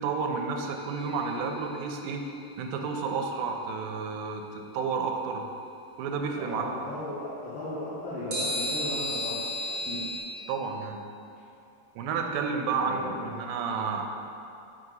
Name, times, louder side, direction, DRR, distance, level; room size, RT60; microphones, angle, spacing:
voice 1, 0.0-2.2 2.6-5.5 6.0-6.7 10.5-11.0 12.0-14.0, right 5 dB, 85° right, 3 dB, 2.3 m, -31 dB
sound 1, 0.7-1.9 8.3-10.2, left 1 dB, 40° right, 1.3 m, -33 dB
voice 2, 6.4-9.3 9.8-10.0 12.7-13.2, left 1 dB, 75° left, -12 dB, 2.8 m, -36 dB
8.4 x 2.9 x 5.4 m, 2.7 s
omnidirectional pair, 4.0 m